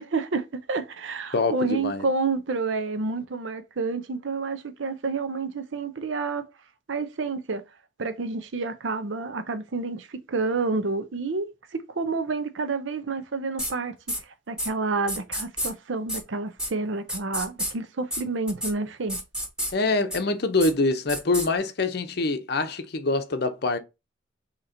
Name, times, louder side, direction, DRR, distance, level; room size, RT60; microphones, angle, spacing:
voice 1, 0.0-6.5 6.9-7.6 8.0-13.9 14.2-19.2, right 3 dB, 70° right, 0.6 m, -29 dB
voice 2, 1.3-2.1 19.7-23.8, left 3 dB, 55° left, 0.6 m, -25 dB
sound 1, 13.6-13.7 14.1-14.2 14.6-14.7 15.1-15.7 16.1-16.2 16.6-16.7 17.1-17.7 18.1-18.2 18.5-18.7 19.1-19.7 20.1-20.2 20.6-20.7 21.1-21.5, equal, 5° right, 1.0 m, -29 dB
3.8 x 2.9 x 4.2 m
head